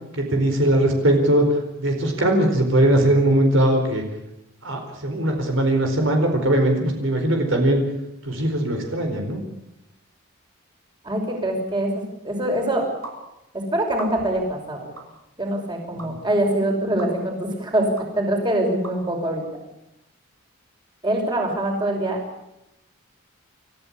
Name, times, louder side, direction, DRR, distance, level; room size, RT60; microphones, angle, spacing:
voice 1, 0.1-4.0 4.6-7.8 8.2-9.4 16.0-16.1, right 1 dB, 65° right, 3 dB, 4.5 m, -20 dB
voice 2, 11.0-12.9 13.5-14.9 15.4-19.5 21.0-22.2, right 1 dB, 20° right, 2 dB, 5.8 m, -24 dB
sound 1, 13.0-13.2 13.9-14.4 15.0-15.1 16.0-16.1 17.0-17.1 18.0-18.1 18.8-19.0, right 3 dB, 80° right, 7.3 m, -37 dB
29.0 x 15.0 x 8.6 m, 0.88 s
head